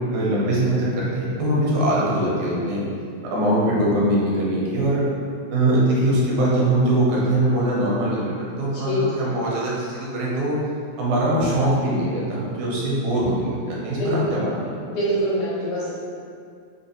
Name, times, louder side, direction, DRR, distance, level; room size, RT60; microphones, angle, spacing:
voice 1, 0.1-2.8 3.3-5.1 5.5-10.6 11.0-14.8, right 1 dB, 80° right, -6 dB, 2.1 m, -22 dB
voice 2, 14.9-15.9, equal, 85° left, -10 dB, 2.6 m, -24 dB
6.0 x 2.2 x 2.6 m, 2.3 s
omnidirectional pair, 3.4 m